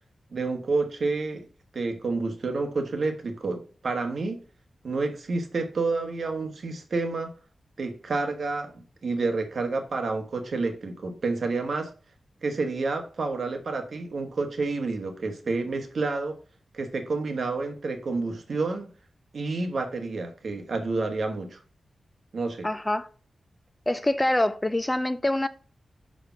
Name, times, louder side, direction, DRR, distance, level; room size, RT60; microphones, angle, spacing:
voice 1, 0.3-1.4 1.7-4.4 4.8-7.3 7.8-11.9 12.4-16.4 16.7-18.9 19.3-21.6 22.3-22.7, right 3 dB, 55° right, 1.4 m, -29 dB
voice 2, 22.6-23.1 23.9-25.5, left 1 dB, 15° left, 0.4 m, -25 dB
5.9 x 5.0 x 5.6 m
wide cardioid pair, 135°, 0 cm